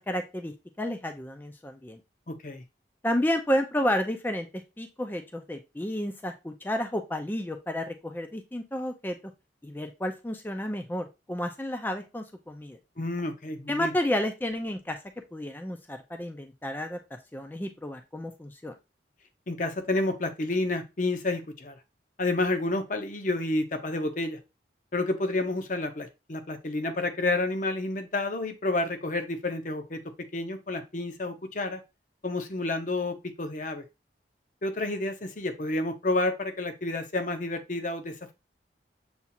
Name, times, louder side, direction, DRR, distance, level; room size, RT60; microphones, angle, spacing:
voice 1, 0.1-0.5 0.8-2.0 3.0-9.2 9.6-12.8 13.7-15.0 15.3-17.0 17.3-18.7, left 1 dB, 10° left, 6 dB, 0.4 m, -31 dB
voice 2, 2.3-2.6 13.0-13.9 19.5-21.8 22.2-24.4 24.9-30.0 30.3-31.8 32.2-33.8 34.6-38.3, left 2 dB, 45° left, 7 dB, 0.7 m, -30 dB
7.0 x 2.4 x 2.7 m, 0.26 s
head